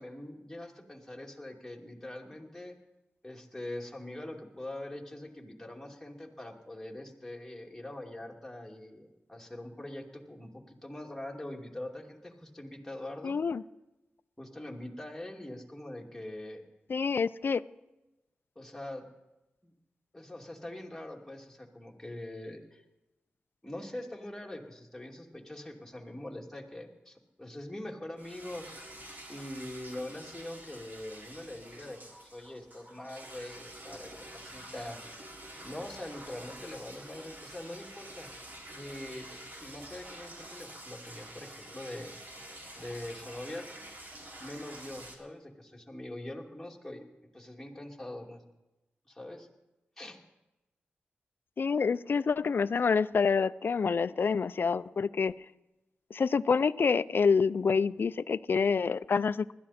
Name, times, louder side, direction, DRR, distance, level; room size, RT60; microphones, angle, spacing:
voice 1, 0.0-2.7 3.2-13.4 14.4-16.6 18.6-19.0 19.6-19.7 20.1-22.8 23.6-28.6 29.3-35.1 35.6-38.3 38.7-39.2 39.6-42.1 42.7-43.6 44.4-47.0 47.3-48.4 49.1-49.5 50.0-50.2, left 1 dB, 10° left, 0 dB, 2.6 m, -43 dB
voice 2, 13.2-13.6 16.9-17.6 51.6-55.3 56.1-59.5, left 5 dB, 60° left, 17 dB, 0.4 m, -27 dB
sound 1, 28.2-45.2, right 1 dB, 50° right, 3.1 m, -48 dB
20.0 x 13.0 x 4.3 m, 1.0 s
cardioid pair, 65°, 4 cm